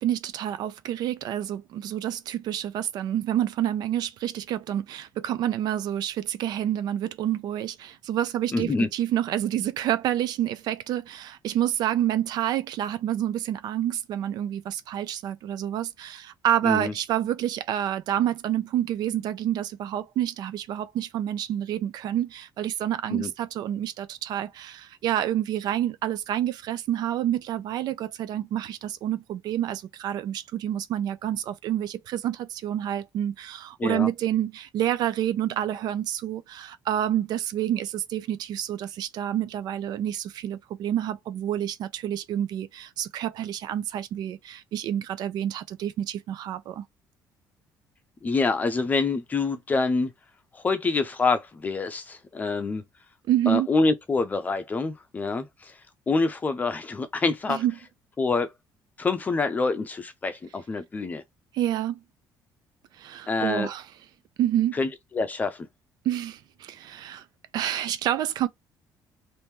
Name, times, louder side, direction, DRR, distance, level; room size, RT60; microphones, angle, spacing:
voice 1, 0.0-46.8 53.3-53.7 57.5-57.7 61.5-62.0 63.0-63.8 64.4-64.8 66.0-67.2 67.5-68.5, right 11 dB, 65° right, 0.5 m, -28 dB
voice 2, 8.5-8.9 16.6-16.9 23.1-23.3 33.8-34.1 48.2-50.1 50.5-52.8 53.5-55.7 56.1-57.6 58.2-58.5 59.0-61.2 63.3-63.7 64.7-65.7, left 3 dB, 20° left, 0.6 m, -26 dB
3.0 x 2.6 x 3.5 m
cardioid pair, 155°, 8 cm